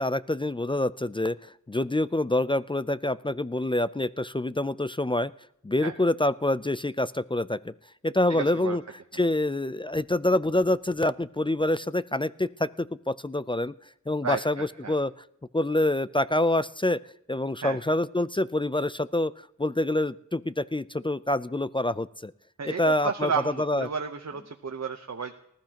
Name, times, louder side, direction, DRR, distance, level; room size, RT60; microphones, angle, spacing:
voice 1, 0.0-5.3 5.6-7.7 8.0-8.8 9.1-13.7 14.1-15.1 15.5-17.0 17.3-19.3 19.6-22.3 22.6-23.3 23.6-23.9, left 1 dB, 15° left, 16 dB, 0.4 m, -26 dB
voice 2, 8.3-8.8 14.2-14.9 17.6-17.8 22.6-25.3, right 5 dB, 60° right, 6 dB, 0.9 m, -32 dB
19.5 x 13.0 x 2.9 m, 0.76 s
wide cardioid pair, 55°, 30 cm